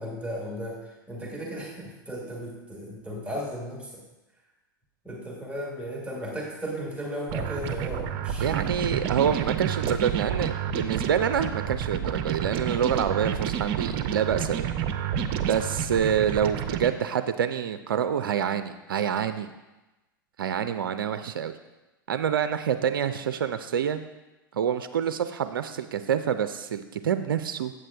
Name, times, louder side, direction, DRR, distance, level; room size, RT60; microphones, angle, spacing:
voice 1, 0.0-4.1 5.0-9.1, equal, 10° right, -2 dB, 1.4 m, -36 dB
sound 1, 7.3-16.9, right 8 dB, 50° right, 0.7 m, -29 dB
voice 2, 8.4-14.7 15.4-19.5 20.4-21.5 22.1-24.0 24.5-27.7, right 8 dB, 80° right, 10 dB, 0.4 m, -27 dB
7.9 x 7.4 x 3.4 m, 1.1 s
hypercardioid pair, 100°, 12 cm